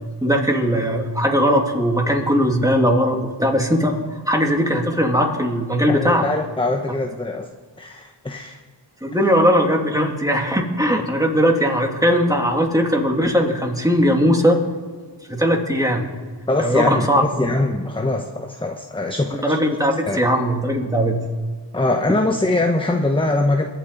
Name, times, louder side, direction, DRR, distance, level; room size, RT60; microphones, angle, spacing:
voice 1, 0.2-3.9 4.3-6.3 9.0-14.6 15.3-16.1 16.6-17.2 19.4-21.2, equal, 10° right, 1 dB, 2.7 m, -19 dB
voice 2, 5.9-7.5 7.8-8.6 16.5-19.6 20.1-20.2 21.7-23.7, left 2 dB, 10° left, 4 dB, 1.0 m, -22 dB
23.0 x 9.1 x 4.1 m, 1.5 s
cardioid pair, 60°, 46 cm